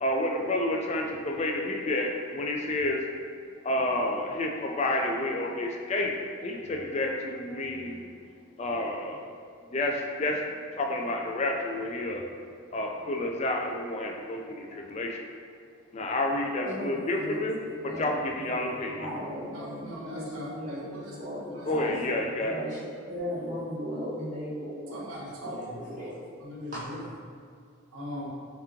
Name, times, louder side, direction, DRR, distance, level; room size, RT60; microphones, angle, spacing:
voice 1, 0.0-3.1 3.6-6.1 6.4-8.0 8.6-9.2 9.7-12.3 12.7-15.2 15.9-19.1 21.7-22.6, left 1 dB, 30° left, 1 dB, 0.3 m, -30 dB
voice 2, 16.7-17.3 17.9-18.1 19.0-21.9 22.5-22.8 23.1-25.1 25.4-26.1 26.7-26.8, equal, 35° right, -10 dB, 0.6 m, -36 dB
voice 3, 19.5-21.2 21.4-21.7 24.9-25.8 26.4-27.1 27.9-28.3, equal, 85° right, -4 dB, 0.9 m, -40 dB
3.4 x 3.0 x 3.6 m, 2.2 s
head